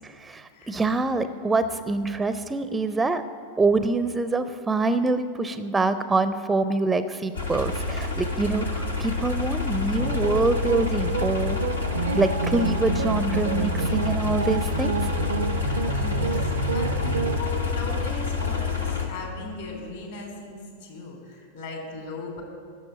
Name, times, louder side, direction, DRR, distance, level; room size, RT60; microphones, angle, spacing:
voice 1, 0.0-3.2 3.6-11.6 12.1-15.1, right 3 dB, 10° right, 12 dB, 0.4 m, -25 dB
sound 1, 7.3-19.1, left 5 dB, 80° left, 1.3 m, -28 dB
sound 2, 10.0-17.4, right 7 dB, 65° right, 0.4 m, -29 dB
voice 2, 15.6-22.4, left 3 dB, 60° left, 1 dB, 3.2 m, -37 dB
12.0 x 7.3 x 8.8 m, 2.3 s
figure-of-eight pair, 90°, 0 cm